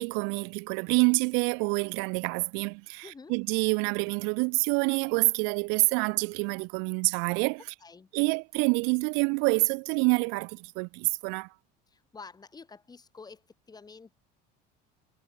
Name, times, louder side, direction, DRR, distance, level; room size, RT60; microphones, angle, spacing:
voice 1, 0.0-7.6 8.1-11.5, right 35 dB, 75° right, 0.6 m, -27 dB
voice 2, 3.0-3.3 7.8-8.1 11.9-13.4 13.7-14.2, left 4 dB, 20° left, 6.3 m, -48 dB
supercardioid pair, 120°, 20 cm